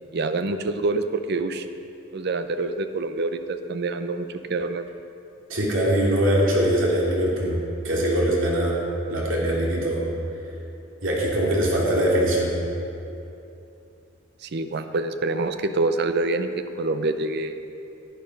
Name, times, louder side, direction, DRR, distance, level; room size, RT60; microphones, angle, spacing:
voice 1, 0.1-1.7 2.1-4.8 14.4-16.5 16.8-17.5, right 3 dB, 55° right, 9 dB, 0.6 m, -26 dB
voice 2, 5.5-7.6 7.8-8.7 9.1-10.0 11.0-12.5, right 1 dB, 75° right, -4 dB, 2.5 m, -22 dB
11.0 x 10.5 x 5.2 m, 2.8 s
head